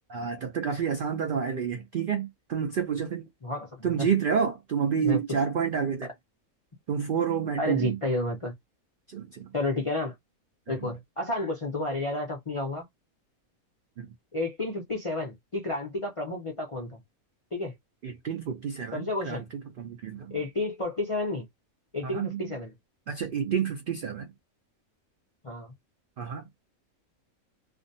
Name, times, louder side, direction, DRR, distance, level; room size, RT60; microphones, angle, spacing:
voice 1, 0.1-3.3 3.8-6.1 6.9-8.0 9.1-9.5 10.7-10.9 14.0-14.1 18.0-20.4 22.0-22.4 23.1-24.3 26.2-26.4, right 7 dB, 90° right, 0.4 m, -29 dB
voice 2, 3.4-4.1 5.0-5.2 7.6-8.5 9.5-10.1 10.7-12.9 14.3-17.0 17.5-17.7 18.9-19.4 20.3-21.4 21.9-22.7 25.4-25.7, left 2 dB, 40° left, 0.4 m, -31 dB
2.4 x 2.2 x 2.6 m
omnidirectional pair, 1.5 m